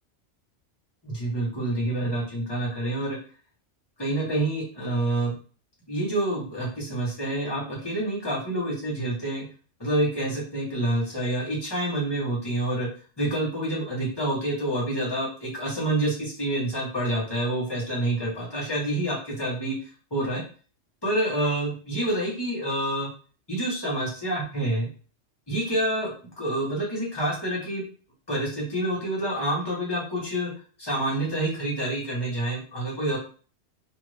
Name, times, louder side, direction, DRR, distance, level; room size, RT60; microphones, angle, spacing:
voice 1, 1.0-3.2 4.0-5.3 5.9-9.4 9.8-12.9 13.2-19.7 20.1-20.4 21.0-23.1 23.5-24.9 25.5-26.1 26.4-27.8 28.3-30.5 30.8-33.2, right 1 dB, 20° left, -4 dB, 1.0 m, -27 dB
2.6 x 2.5 x 3.2 m, 0.39 s
omnidirectional pair, 1.2 m